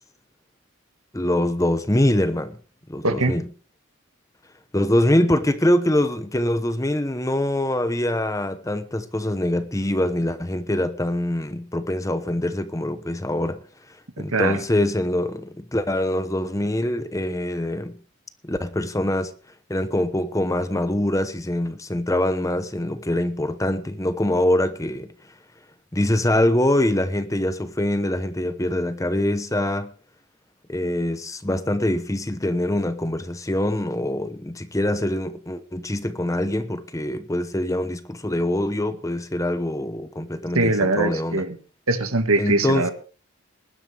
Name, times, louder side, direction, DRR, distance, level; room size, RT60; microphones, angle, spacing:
voice 1, 1.1-2.6 2.9-3.4 4.7-13.6 14.2-18.0 18.4-19.3 19.7-25.1 25.9-29.9 30.7-41.4 42.4-42.9, left 1 dB, 15° left, 0.9 m, -24 dB
voice 2, 3.0-3.4 14.2-14.6 40.6-41.6 41.9-42.9, right 2 dB, 80° right, 1.8 m, -22 dB
20.5 x 11.5 x 3.4 m
head